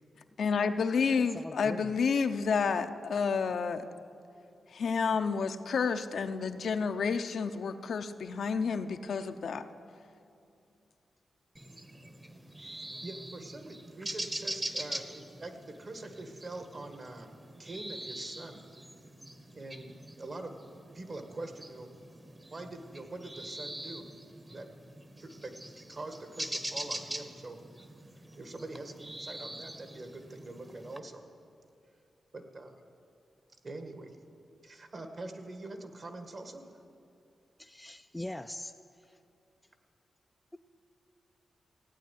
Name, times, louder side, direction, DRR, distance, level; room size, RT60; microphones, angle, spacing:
voice 1, 0.4-3.9 4.7-9.6, left 5 dB, 70° left, 7 dB, 0.7 m, -30 dB
voice 2, 1.3-1.9 37.6-38.7 39.0-39.2, left 1 dB, 10° left, 8 dB, 0.4 m, -41 dB
sound 1, 11.6-31.0, right 1 dB, 20° right, 1.1 m, -43 dB
voice 3, 12.6-17.3 17.6-18.6 19.6-20.6 20.9-21.9 22.5-24.1 24.5-24.7 25.2-25.6 25.9-27.6 28.4-31.2 32.3-32.8 33.6-34.2 34.6-36.7, right 2 dB, 45° right, 6 dB, 1.7 m, -44 dB
16.0 x 9.1 x 9.4 m, 2.5 s
cardioid pair, 80°, 0 cm